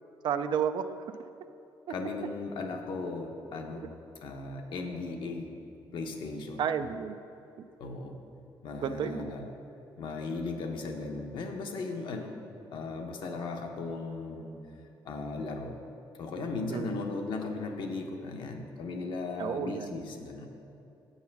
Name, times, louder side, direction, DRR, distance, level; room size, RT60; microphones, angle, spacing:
voice 1, 0.2-0.9 3.8-3.9 6.6-7.2 8.8-9.3 16.7-17.0 19.4-19.9, right 8 dB, 65° right, 10 dB, 0.4 m, -31 dB
voice 2, 1.9-5.5 5.9-6.6 7.8-8.2 8.6-9.5 10.0-12.4 12.7-14.6 15.0-15.7 16.2-20.5, left 3 dB, 65° left, 3 dB, 0.9 m, -37 dB
7.7 x 5.6 x 5.9 m, 2.7 s
cardioid pair, 105°, 9 cm